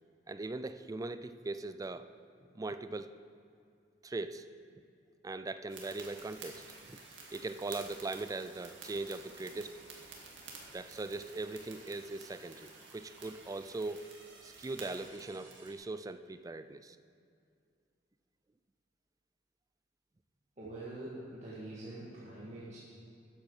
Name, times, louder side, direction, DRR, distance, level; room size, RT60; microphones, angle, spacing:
voice 1, 0.3-2.1 2.5-3.2 4.0-4.5 5.2-7.0 7.3-9.8 10.7-14.1 14.4-17.0, right 2 dB, 20° right, 12 dB, 0.4 m, -40 dB
sound 1, 5.7-15.7, right 3 dB, 85° right, 2.0 m, -52 dB
voice 2, 20.6-22.8, right 1 dB, 40° right, -8 dB, 1.7 m, -44 dB
13.5 x 8.2 x 4.9 m, 2.3 s
head